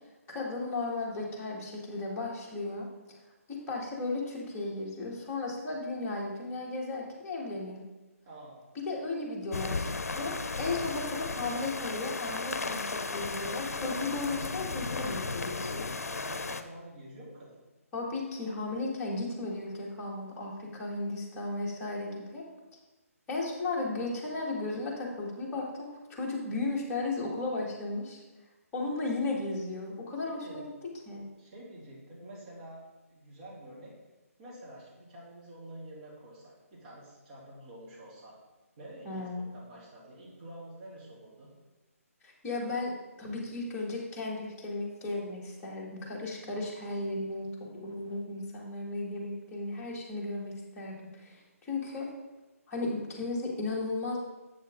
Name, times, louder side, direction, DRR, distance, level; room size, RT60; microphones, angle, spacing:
voice 1, 0.3-2.9 3.7-7.8 8.8-15.9 17.9-22.4 23.3-28.2 28.7-30.7 31.1-31.3 39.1-39.5 42.2-42.9 43.2-52.1 52.7-54.2, left 2 dB, 15° left, -4 dB, 1.8 m, -35 dB
voice 2, 8.2-8.6 16.0-17.6 30.2-30.6 31.4-32.8 33.1-33.9 34.4-38.4 38.8-41.5, right 1 dB, 35° right, -5 dB, 2.9 m, -48 dB
sound 1, 9.5-16.6, left 3 dB, 75° left, 0.6 m, -35 dB
8.4 x 6.4 x 3.7 m, 1.1 s
figure-of-eight pair, 145°, 8 cm